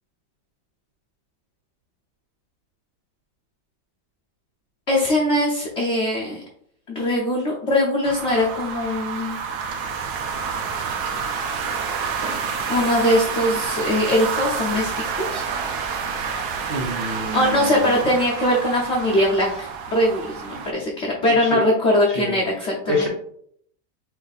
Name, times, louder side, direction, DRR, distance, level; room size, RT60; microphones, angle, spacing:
voice 1, 4.9-6.4 6.9-9.4 12.7-15.5 17.3-23.1, left 1 dB, 50° left, -4 dB, 0.8 m, -21 dB
sound 1, 8.0-20.7, right 5 dB, 65° right, 1.1 m, -28 dB
voice 2, 16.7-17.9 21.4-21.6 22.1-22.3 22.9-23.1, equal, 80° right, -2 dB, 0.5 m, -26 dB
4.4 x 2.6 x 4.0 m, 0.66 s
omnidirectional pair, 2.1 m